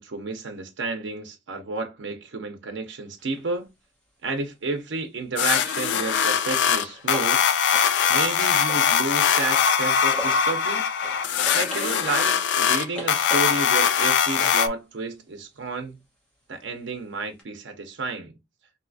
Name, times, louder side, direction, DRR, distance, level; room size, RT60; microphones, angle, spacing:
voice 1, 0.0-3.7 4.2-7.5 8.1-10.8 11.5-16.0 16.5-18.3, right 3 dB, 80° right, 0.5 m, -31 dB
sound 1, 3.2-3.4 5.7-10.7 11.0-14.7 17.4-17.5, equal, 5° left, 0.9 m, -41 dB
sound 2, 5.4-14.7, left 7 dB, 75° left, 0.3 m, -22 dB
3.1 x 2.7 x 2.6 m
head